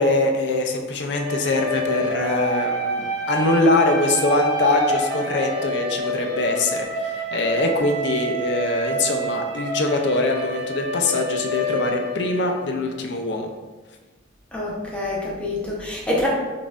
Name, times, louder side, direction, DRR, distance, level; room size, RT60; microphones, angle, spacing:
voice 1, 0.0-13.5, left 2 dB, 65° left, 3 dB, 0.5 m, -23 dB
sound 1, 1.1-12.9, right 2 dB, 60° right, 1.0 m, -28 dB
voice 2, 14.5-16.3, left 1 dB, 5° left, -5 dB, 0.7 m, -26 dB
5.4 x 2.5 x 2.4 m, 1.3 s
head